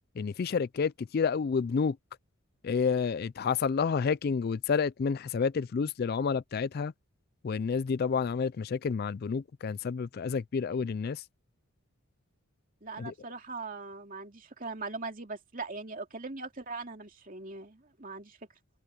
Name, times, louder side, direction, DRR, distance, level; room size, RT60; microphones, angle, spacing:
voice 1, 0.2-2.0 2.6-6.9 7.4-11.2 13.0-13.1, left 5 dB, 45° left, 0.3 m, -29 dB
voice 2, 12.8-18.4, right 3 dB, 40° right, 2.7 m, -40 dB
head